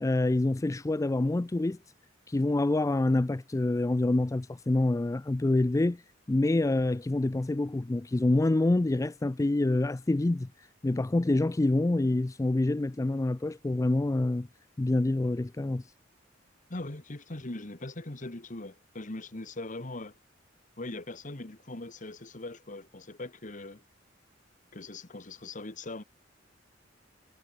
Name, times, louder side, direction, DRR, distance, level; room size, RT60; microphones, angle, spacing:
voice 1, 0.0-1.8 2.3-6.0 6.3-14.5 14.8-15.9, left 2 dB, 15° left, 0.4 m, -26 dB
voice 2, 16.7-20.2 20.8-23.8 24.7-26.0, left 2 dB, 45° left, 1.7 m, -40 dB
head